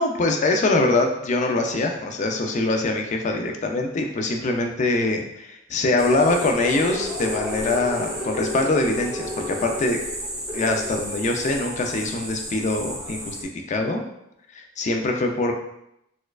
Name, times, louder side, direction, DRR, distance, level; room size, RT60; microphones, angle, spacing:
voice 1, 0.0-10.0 10.5-14.0 14.5-15.5, left 2 dB, 40° left, 3 dB, 0.4 m, -23 dB
sound 1, 6.0-13.4, left 1 dB, 20° right, 0.7 m, -32 dB
4.2 x 2.3 x 2.3 m, 0.80 s
head